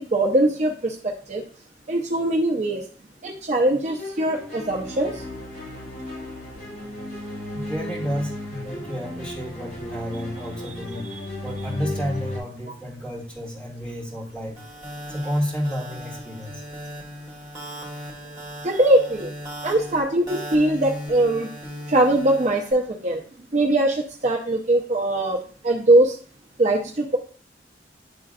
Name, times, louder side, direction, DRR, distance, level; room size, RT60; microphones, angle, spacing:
voice 1, 0.0-1.4 1.9-2.8 3.2-5.2 11.1-11.2 18.6-19.3 19.6-21.5 21.9-23.2 23.5-26.2 26.6-27.2, right 1 dB, 40° right, 0 dB, 0.6 m, -21 dB
sound 1, 3.8-12.4, left 1 dB, 40° left, 2.7 m, -35 dB
voice 2, 7.5-11.0 11.4-14.6 15.1-16.6, equal, 5° left, -6 dB, 2.2 m, -31 dB
sound 2, 14.6-22.7, equal, 20° right, 2.0 m, -38 dB
10.0 x 3.8 x 2.4 m, 0.42 s
head